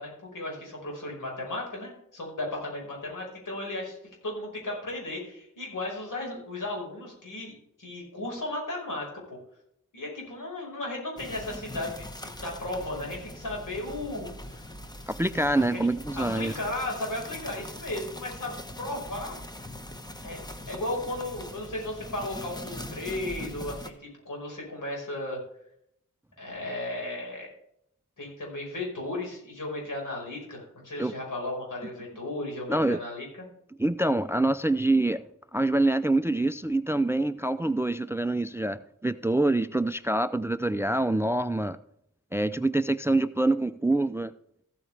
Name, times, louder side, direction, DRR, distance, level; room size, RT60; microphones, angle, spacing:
voice 1, 0.0-4.0 4.2-9.4 9.9-12.1 12.4-14.7 15.7-15.9 16.1-19.4 20.2-25.4 26.4-27.5 28.2-33.3, left 1 dB, 80° left, -1 dB, 5.0 m, -35 dB
sound 1, 11.2-23.9, left 1 dB, 15° left, 1.0 m, -41 dB
voice 2, 15.1-16.5 31.0-31.1 32.7-33.0 33.8-35.2 35.5-41.8 42.3-44.3, right 2 dB, 10° right, 14 dB, 0.3 m, -25 dB
14.5 x 8.6 x 3.4 m, 0.73 s
wide cardioid pair, 100°, 31 cm